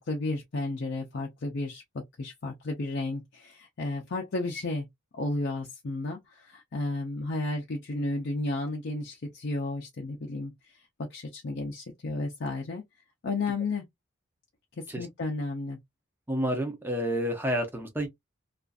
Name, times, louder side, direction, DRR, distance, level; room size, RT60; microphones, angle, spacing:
voice 1, 0.0-4.9 5.1-10.8 11.1-12.8 13.2-13.8 15.0-15.8, left 2 dB, 55° left, 0.5 m, -33 dB
voice 2, 16.3-18.1, equal, 10° right, 0.6 m, -29 dB
2.4 x 2.4 x 2.3 m
head